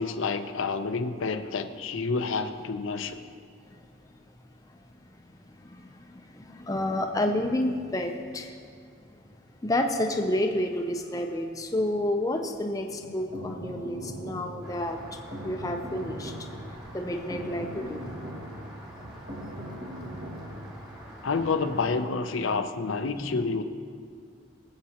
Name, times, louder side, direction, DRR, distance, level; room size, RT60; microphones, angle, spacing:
voice 1, 0.0-3.2 21.2-23.6, left 4 dB, 85° left, 8 dB, 0.6 m, -29 dB
voice 2, 6.1-8.5 9.6-15.0 15.4-16.3 16.9-18.1 23.2-23.4, left 1 dB, 15° left, 3 dB, 0.5 m, -29 dB
sound 1, 12.9-20.7, equal, 60° right, 1.8 m, -40 dB
Rain, 14.6-22.0, equal, 20° right, 1.8 m, -46 dB
20.5 x 7.4 x 2.9 m, 2.2 s
head